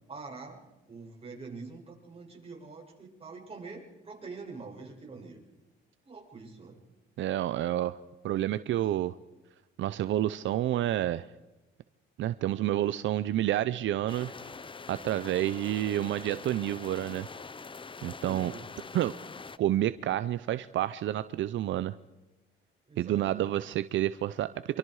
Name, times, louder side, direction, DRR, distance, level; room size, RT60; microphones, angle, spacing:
voice 1, 0.1-5.4 6.1-6.8 18.2-18.7 22.9-23.5, right 4 dB, 30° right, -1 dB, 7.5 m, -45 dB
voice 2, 7.2-8.0 8.2-9.2 9.8-11.3 12.2-14.5 14.9-17.3 18.0-18.5 18.9-19.1 19.6-21.9 23.0-24.8, right 13 dB, 75° right, 14 dB, 0.7 m, -29 dB
sound 1, 14.1-19.6, left 4 dB, 25° left, 0.9 m, -44 dB
26.5 x 24.5 x 4.9 m, 1.1 s
cardioid pair, 90°, 20 cm